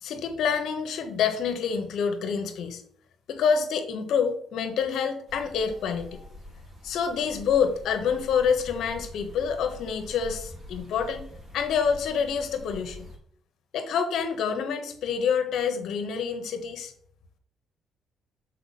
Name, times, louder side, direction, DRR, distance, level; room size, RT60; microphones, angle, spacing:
voice 1, 0.0-2.8 3.3-6.3 6.8-11.2 11.5-13.0 13.7-16.9, left 6 dB, 75° left, 7 dB, 1.1 m, -27 dB
sound 1, 5.3-13.2, left 1 dB, 50° right, 2.5 m, -45 dB
6.7 x 4.5 x 4.2 m, 0.65 s
cardioid pair, 90°, 0 cm